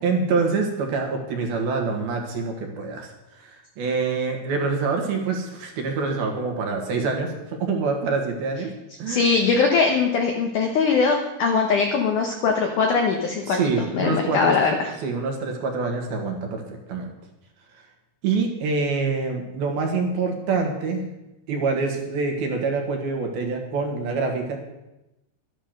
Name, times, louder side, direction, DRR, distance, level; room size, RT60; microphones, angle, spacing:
voice 1, 0.0-8.7 9.0-9.4 13.5-14.6 15.0-17.1 18.2-21.0 21.5-24.6, right 4 dB, 65° right, 2 dB, 3.2 m, -26 dB
voice 2, 9.1-13.7 13.9-14.9, left 5 dB, 85° left, 3 dB, 1.7 m, -21 dB
12.5 x 10.5 x 6.6 m, 0.95 s
omnidirectional pair, 5.3 m